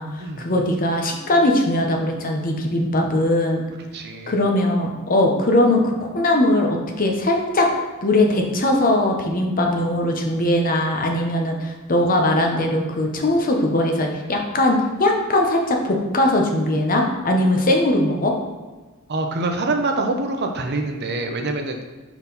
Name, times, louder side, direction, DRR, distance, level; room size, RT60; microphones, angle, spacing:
voice 1, 0.0-3.6 4.3-7.7 8.0-18.3, left 1 dB, 40° left, 2 dB, 0.9 m, -20 dB
voice 2, 3.9-4.3 19.1-21.9, right 2 dB, 55° right, 4 dB, 0.7 m, -25 dB
5.6 x 4.6 x 4.0 m, 1.3 s
head